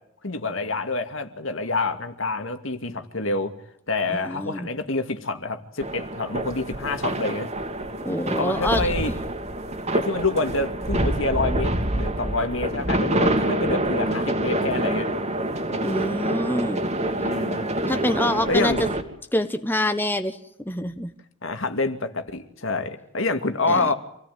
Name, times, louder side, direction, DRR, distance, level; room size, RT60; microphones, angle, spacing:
voice 1, 0.2-3.5 3.9-7.5 8.4-9.2 9.9-15.1 15.7-15.8 17.2-17.7 18.5-18.8 21.4-23.9, left 3 dB, 70° left, 7 dB, 2.4 m, -27 dB
voice 2, 4.1-4.7 8.0-8.9 15.8-16.9 17.9-18.7 19.3-21.1 23.7-23.9, left 1 dB, 10° left, 8 dB, 1.3 m, -26 dB
sound 1, 5.8-19.0, right 1 dB, 35° right, 2.6 m, -26 dB
27.5 x 17.5 x 9.4 m, 0.73 s
head